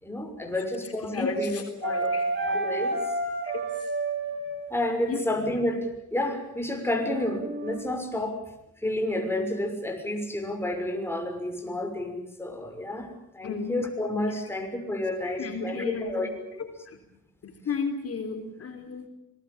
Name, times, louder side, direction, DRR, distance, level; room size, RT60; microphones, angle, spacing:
voice 1, 0.0-2.1 2.4-3.1 4.7-8.4 8.8-16.6, left 1 dB, 10° left, 4 dB, 6.1 m, -30 dB
voice 2, 0.5-2.4 3.4-3.6 5.0-5.2 13.4-13.8 14.3-14.5 15.2-16.3 16.6-16.7 17.4-19.1, left 4 dB, 50° left, 5 dB, 3.6 m, -34 dB
sound 1, 1.8-4.7 7.0-7.8, right 2 dB, 40° right, 6.0 m, -30 dB
25.0 x 20.0 x 8.7 m, 0.78 s
cardioid pair, 90°, 30 cm